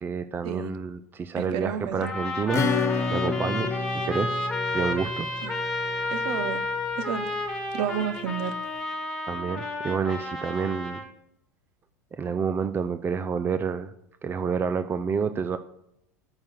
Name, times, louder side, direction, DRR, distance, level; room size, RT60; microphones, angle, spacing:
voice 1, 0.0-2.7 3.1-4.4 4.6-5.3 5.8-6.1 9.3-11.0 12.2-13.9 14.2-15.6, right 6 dB, 25° right, 11 dB, 0.6 m, -29 dB
voice 2, 1.4-2.1 5.4-5.5 6.1-6.6 7.0-7.3 7.7-8.6, right 8 dB, 60° right, 12 dB, 1.0 m, -31 dB
Trumpet, 2.0-11.1, left 2 dB, 5° left, 2.0 m, -31 dB
Acoustic guitar / Strum, 2.5-6.8, left 4 dB, 30° left, 1.5 m, -30 dB
8.8 x 6.0 x 7.5 m, 0.79 s
hypercardioid pair, 90°, 9 cm